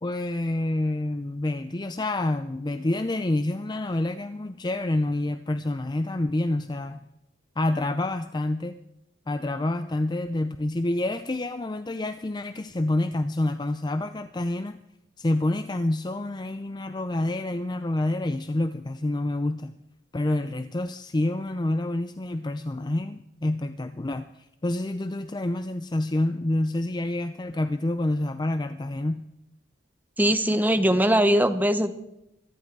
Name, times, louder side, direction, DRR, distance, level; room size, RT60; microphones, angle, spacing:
voice 1, 0.0-7.0 7.6-8.8 9.3-14.8 15.2-19.7 20.1-29.2, left 1 dB, 20° left, 10 dB, 0.5 m, -28 dB
voice 2, 30.2-32.0, equal, 10° right, 9 dB, 1.0 m, -21 dB
24.0 x 11.0 x 4.7 m, 0.86 s
head